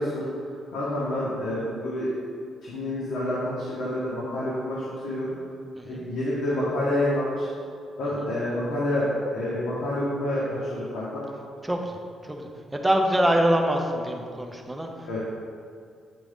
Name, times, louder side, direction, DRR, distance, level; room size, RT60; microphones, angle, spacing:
voice 1, 0.0-2.2 2.6-5.4 5.8-7.5 8.0-11.2 15.1-15.2, left 1 dB, 90° left, -8 dB, 1.2 m, -28 dB
voice 2, 11.6-12.0 12.2-15.2, equal, 5° right, 2 dB, 0.5 m, -25 dB
8.2 x 3.7 x 3.5 m, 2.3 s
cardioid pair, 175°, 0 cm